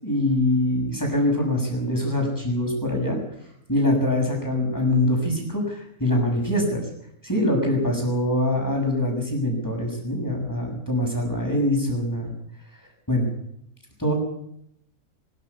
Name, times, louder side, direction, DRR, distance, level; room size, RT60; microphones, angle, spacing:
voice 1, 0.0-3.2 3.7-6.8 7.2-12.3 13.1-13.3 14.0-14.1, left 1 dB, 10° left, 1 dB, 6.7 m, -23 dB
23.0 x 13.5 x 8.3 m, 0.74 s
omnidirectional pair, 1.5 m